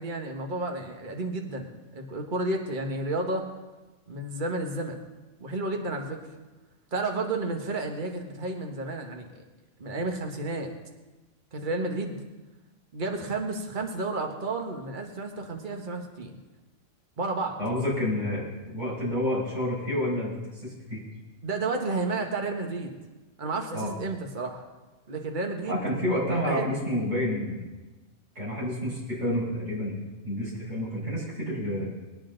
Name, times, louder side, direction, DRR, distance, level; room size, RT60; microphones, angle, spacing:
voice 1, 0.0-3.5 4.1-5.0 5.4-6.2 6.9-9.4 9.8-10.7 11.5-12.2 12.9-16.4 17.2-17.6 21.4-23.0 23.4-24.6 25.1-25.8 26.4-26.6, right 2 dB, 35° right, 3 dB, 1.5 m, -31 dB
voice 2, 17.6-18.4 18.7-20.3 20.6-21.0 23.7-23.9 25.7-27.6 28.4-29.9 30.2-31.9, left 1 dB, 65° right, -6 dB, 5.6 m, -29 dB
21.0 x 9.8 x 3.9 m, 1.2 s
omnidirectional pair, 1.4 m